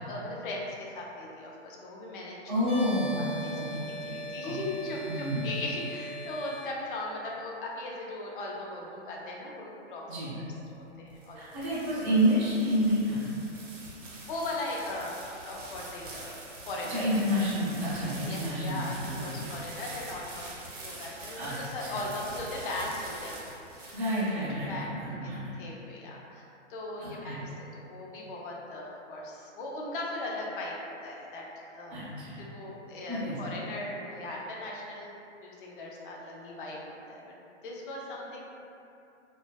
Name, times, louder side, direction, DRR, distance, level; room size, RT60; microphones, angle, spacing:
voice 1, 0.0-2.4 3.2-10.0 10.4-10.5 10.7-11.4 14.3-16.3 16.7-17.0 18.2-20.5 20.8-24.3 24.7-25.3 25.6-26.4 26.7-32.0 32.4-35.1 35.4-37.3 37.6-38.4, left 2 dB, 45° left, -3 dB, 0.4 m, -38 dB
voice 2, 2.5-3.2 3.5-4.2 4.4-4.7 5.1-5.5 10.1-10.4 11.3-13.3 16.8-19.5 21.3-22.0 23.9-25.5 27.0-27.4 31.9-32.4 33.1-33.7, equal, 30° right, -12 dB, 0.4 m, -30 dB
sound 1, 2.6-6.7, equal, 65° left, 0.8 m, -40 dB
sound 2, 10.9-24.7, right 2 dB, 85° right, 0.7 m, -45 dB
2.4 x 2.3 x 2.2 m, 2.7 s
hypercardioid pair, 150°, 37 cm